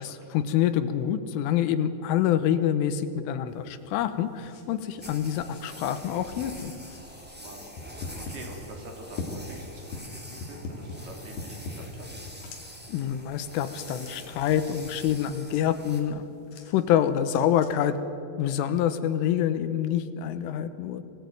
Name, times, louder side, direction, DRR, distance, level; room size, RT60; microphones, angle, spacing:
voice 1, 0.0-6.7 12.9-16.2 16.7-17.9 18.4-21.0, left 10 dB, 75° left, 10 dB, 3.4 m, -26 dB
sound 1, 3.5-17.7, left 3 dB, 60° left, 4.3 m, -44 dB
sound 2, 5.0-16.0, equal, 5° right, 0.9 m, -45 dB
voice 2, 7.2-7.6 7.9-12.1, right 2 dB, 55° right, 2 dB, 4.4 m, -46 dB
24.5 x 17.5 x 9.2 m, 2.6 s
omnidirectional pair, 6.0 m